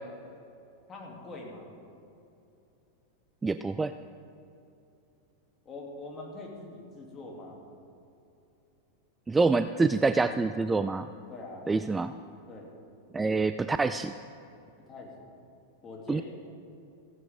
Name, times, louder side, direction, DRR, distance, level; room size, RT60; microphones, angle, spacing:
voice 1, 0.9-1.7 5.6-7.6 11.3-11.6 12.5-12.7 14.9-15.4 15.8-16.2, left 2 dB, 25° left, -1 dB, 3.0 m, -43 dB
voice 2, 3.4-3.9 9.3-11.1 11.7-12.1 13.1-14.1 16.1-16.2, right 3 dB, 10° right, 11 dB, 0.3 m, -26 dB
15.5 x 15.5 x 3.7 m, 2.8 s
figure-of-eight pair, 90°, 0 cm